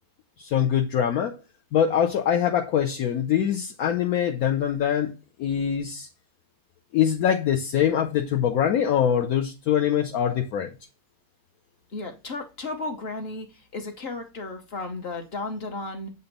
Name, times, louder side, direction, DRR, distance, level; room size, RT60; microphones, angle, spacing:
voice 1, 0.4-1.4 1.7-5.1 5.4-6.1 6.9-10.7, left 9 dB, 65° left, 1.1 m, -23 dB
voice 2, 11.9-13.5 13.7-16.1, left 3 dB, 40° left, 1.1 m, -34 dB
8.0 x 2.8 x 5.2 m
omnidirectional pair, 1.7 m